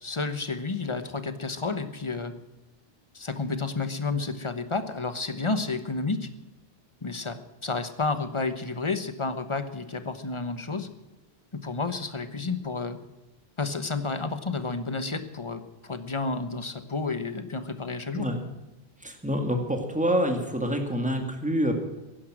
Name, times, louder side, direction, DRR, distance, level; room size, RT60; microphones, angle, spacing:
voice 1, 0.0-2.3 3.1-6.3 7.0-7.4 7.6-10.9 11.6-13.0 13.6-18.3, left 3 dB, 30° left, 10 dB, 1.1 m, -31 dB
voice 2, 19.0-21.7, equal, 5° right, 4 dB, 2.0 m, -26 dB
16.5 x 11.5 x 6.2 m, 1.1 s
omnidirectional pair, 1.1 m